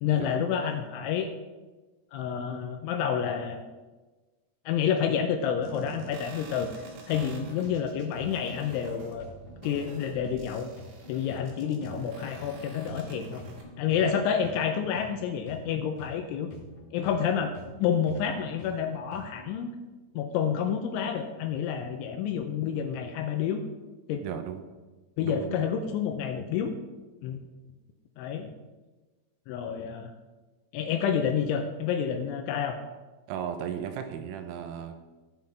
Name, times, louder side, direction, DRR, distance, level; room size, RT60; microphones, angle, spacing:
voice 1, 0.0-1.3 2.1-3.6 4.7-6.7 7.1-9.3 9.6-10.7 11.1-13.4 13.8-16.5 16.9-19.7 20.1-23.6 24.1-24.2 25.2-26.8 27.2-27.4 28.2-28.5 29.5-30.1 30.7-32.8, left 8 dB, 85° left, 5 dB, 2.8 m, -29 dB
sound 1, 5.6-13.6, right 3 dB, 70° right, 2.2 m, -47 dB
sound 2, 6.2-19.5, left 3 dB, 50° left, 2.8 m, -49 dB
voice 2, 24.2-24.6 25.2-25.6 33.3-35.0, right 8 dB, 85° right, 8 dB, 3.4 m, -35 dB
17.0 x 5.6 x 3.4 m, 1.2 s
omnidirectional pair, 5.9 m